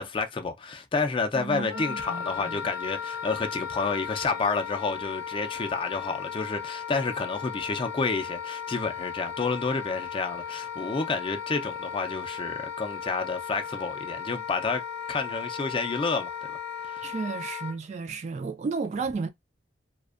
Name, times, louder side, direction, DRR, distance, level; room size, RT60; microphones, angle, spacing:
voice 1, 0.0-14.8 15.1-17.1, left 4 dB, 30° left, 0.4 m, -30 dB
voice 2, 1.3-2.6 17.0-19.3, right 4 dB, 40° right, 0.3 m, -33 dB
Wind instrument woodwind instrument, 1.7-17.8, left 7 dB, 80° left, 0.5 m, -36 dB
2.5 x 2.2 x 2.4 m
head